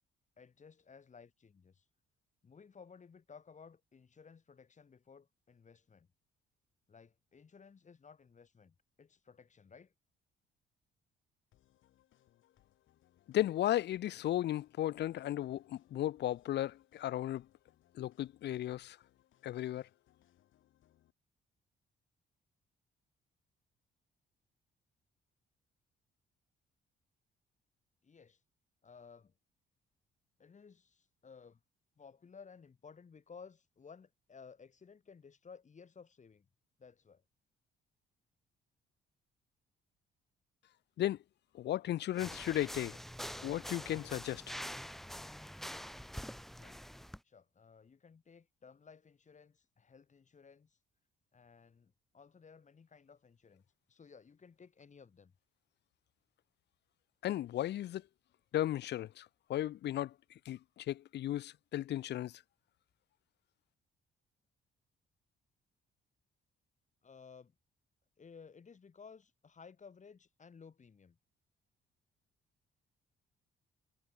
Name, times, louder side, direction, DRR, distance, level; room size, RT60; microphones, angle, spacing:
voice 1, 0.4-1.8 2.4-6.1 6.9-9.9 28.0-28.4 28.8-29.3 30.4-31.6 32.0-36.5 36.8-37.2 46.5-46.8 47.2-50.8 51.3-55.3 67.0-67.6 68.2-71.2, left 5 dB, 35° left, 2.7 m, -57 dB
sound 1, 11.5-21.1, left 13 dB, 80° left, 3.6 m, -71 dB
voice 2, 13.3-17.5 18.0-19.0 19.4-19.9 41.0-41.2 41.5-43.0 43.4-44.4 57.2-58.0 58.5-60.1 60.5-62.4, left 13 dB, 60° left, 0.5 m, -35 dB
sound 2, 42.2-47.2, equal, ahead, 0.6 m, -45 dB
cardioid pair, 90°, 20 cm